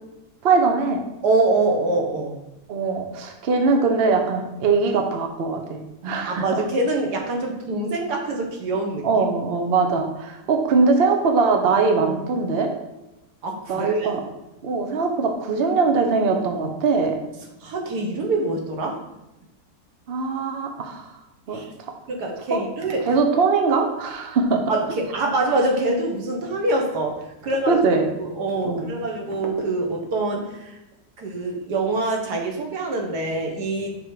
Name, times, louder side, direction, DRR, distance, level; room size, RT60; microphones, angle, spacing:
voice 1, 0.4-1.0 2.7-6.4 9.0-12.7 13.7-14.2 14.6-17.2 20.1-21.1 21.5-21.6 22.5-22.6 23.1-24.6 27.7-28.1 28.6-28.9, right 4 dB, 50° right, 4 dB, 0.8 m, -21 dB
voice 2, 1.2-2.4 6.1-9.1 13.4-14.2 17.6-19.0 21.5-21.7 22.1-23.2 24.7-27.8 28.2-30.8 31.2-34.0, right 2 dB, 85° right, 1 dB, 1.6 m, -25 dB
5.4 x 3.9 x 4.7 m, 0.95 s
omnidirectional pair, 1.7 m